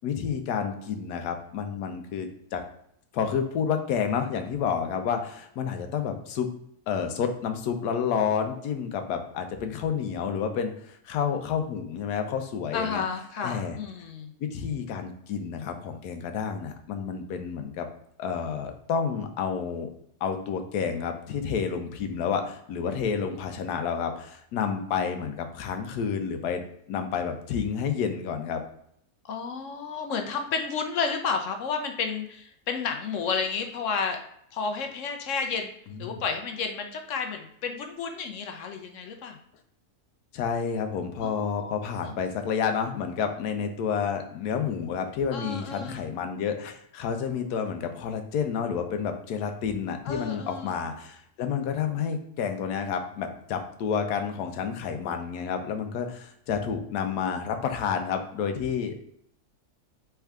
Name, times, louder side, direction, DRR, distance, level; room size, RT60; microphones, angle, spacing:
voice 1, 0.0-2.6 3.1-6.5 6.9-13.0 13.4-13.8 14.4-17.9 18.2-19.9 20.2-26.6 26.9-28.6 35.9-36.2 40.3-59.1, left 7 dB, 80° left, 6 dB, 1.2 m, -30 dB
voice 2, 12.7-14.3 29.3-34.2 34.5-35.7 36.0-39.4 41.2-41.7 42.0-42.1 45.3-46.0 50.0-50.8, left 5 dB, 65° left, 5 dB, 0.8 m, -31 dB
4.4 x 3.5 x 3.4 m, 0.70 s
omnidirectional pair, 1.7 m